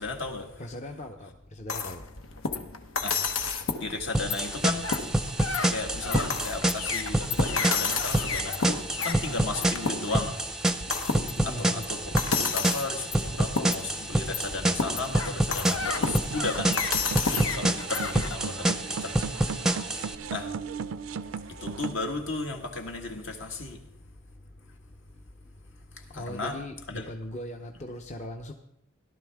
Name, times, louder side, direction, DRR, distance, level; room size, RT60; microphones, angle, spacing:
voice 1, 0.0-0.5 3.0-3.2 3.8-4.9 5.7-10.4 11.4-17.0 17.4-19.1 20.3-20.5 21.6-23.8 26.1-26.6 26.9-27.1, left 3 dB, 70° left, 1.7 m, -35 dB
voice 2, 0.6-2.0 11.4-11.8 26.1-28.5, left 1 dB, 35° left, 0.7 m, -39 dB
sound 1, 1.7-18.4, left 4 dB, 90° left, 1.0 m, -31 dB
sound 2, 4.1-20.1, right 1 dB, 5° right, 0.6 m, -28 dB
sound 3, 15.8-21.9, right 6 dB, 85° right, 0.4 m, -36 dB
17.0 x 11.5 x 3.5 m
head